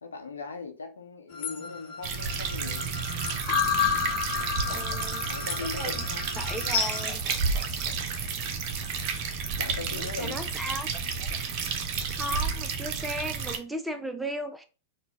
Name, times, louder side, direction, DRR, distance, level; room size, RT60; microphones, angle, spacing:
voice 1, 0.0-2.9 5.1-6.3 9.6-10.5, left 4 dB, 75° left, 0.7 m, -39 dB
sound 1, 1.3-7.1, left 6 dB, 40° left, 0.8 m, -31 dB
sound 2, 2.0-13.6, right 5 dB, 45° right, 0.7 m, -31 dB
sound 3, 4.1-4.4 4.7-5.8 7.1-8.5, left 2 dB, 15° left, 1.4 m, -48 dB
voice 2, 4.6-5.3 5.6-6.0 6.3-7.2 9.9-10.9 11.2-11.4 11.9-14.6, equal, 5° right, 0.5 m, -36 dB
4.0 x 2.2 x 3.0 m
figure-of-eight pair, 95°, 0 cm